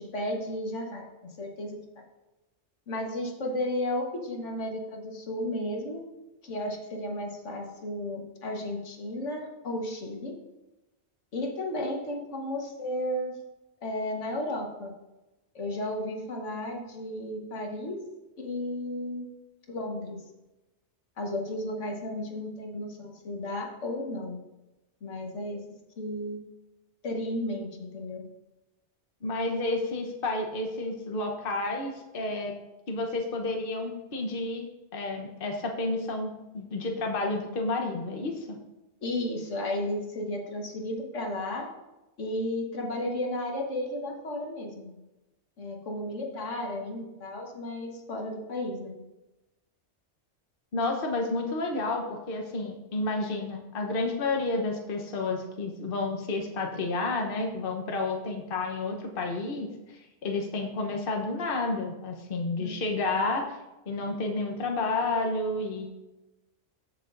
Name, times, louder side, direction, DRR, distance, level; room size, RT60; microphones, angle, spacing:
voice 1, 0.0-2.0 2.9-6.1 6.4-10.3 11.3-13.4 13.8-14.9 15.6-18.0 18.4-19.3 19.7-20.2 21.2-24.4 25.0-25.6 26.0-26.4 27.0-28.2 39.0-41.7 42.2-44.9 45.6-49.0 62.6-62.7, left 1 dB, 90° left, 1 dB, 1.7 m, -33 dB
voice 2, 29.2-32.5 32.9-34.7 34.9-38.6 50.7-63.4 63.9-65.9, left 2 dB, 50° left, 2 dB, 1.2 m, -30 dB
14.0 x 6.7 x 2.6 m, 1.0 s
omnidirectional pair, 1.2 m